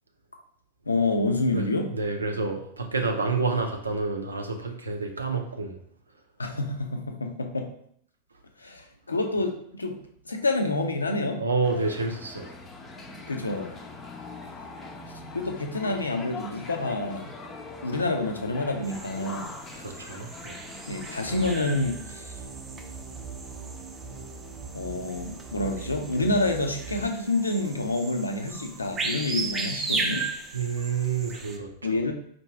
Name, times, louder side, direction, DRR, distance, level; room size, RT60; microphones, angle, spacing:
voice 1, 0.9-1.9 6.4-7.7 8.6-10.0 10.3-11.4 13.3-13.7 15.3-17.3 17.8-19.5 20.9-22.3 24.7-30.3 31.8-32.1, left 2 dB, 80° left, 4 dB, 0.6 m, -28 dB
voice 2, 1.5-5.8 11.4-12.5 19.7-20.6 30.5-32.0, right 4 dB, 75° right, 4 dB, 0.6 m, -29 dB
sound 1, 11.6-21.5, left 3 dB, 25° left, 0.6 m, -42 dB
sound 2, 18.8-31.6, right 3 dB, 20° right, 0.6 m, -36 dB
sound 3, 21.2-27.1, right 4 dB, 5° left, 1.0 m, -41 dB
4.5 x 2.6 x 4.4 m, 0.67 s
figure-of-eight pair, 90°, 0 cm